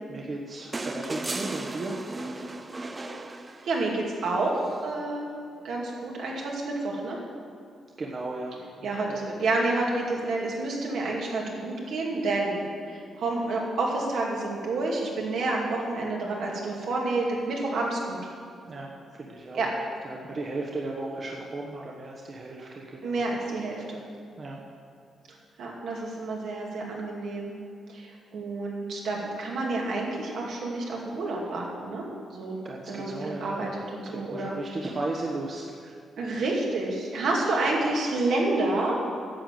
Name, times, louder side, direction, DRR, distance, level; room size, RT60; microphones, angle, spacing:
voice 1, 0.1-2.0 8.0-9.2 18.7-23.2 24.4-24.6 32.6-33.8 34.3-35.9, right 2 dB, 40° right, -1 dB, 1.2 m, -36 dB
sound 1, 0.7-4.1 5.6-5.7, right 2 dB, 25° right, 0.6 m, -35 dB
voice 2, 3.6-5.3 5.6-7.2 8.8-18.2 19.5-19.7 23.0-24.0 25.6-27.5 27.9-32.1 32.3-32.6 32.9-33.1 33.4-34.5 36.2-39.0, right 2 dB, 75° right, -2 dB, 2.4 m, -29 dB
10.5 x 6.9 x 7.7 m, 2.3 s
cardioid pair, 105°, 0 cm